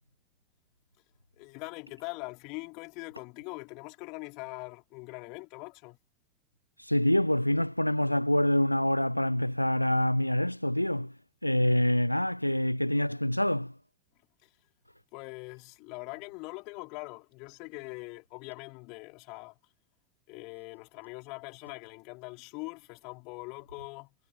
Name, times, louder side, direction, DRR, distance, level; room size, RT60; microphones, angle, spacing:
voice 1, 1.4-6.0 14.4-14.5 15.1-19.5 20.3-24.1, left 28 dB, 45° left, 4.6 m, -42 dB
voice 2, 6.8-11.1 11.4-13.7, left 1 dB, 90° left, 0.4 m, -26 dB
figure-of-eight pair, 85°, 0 cm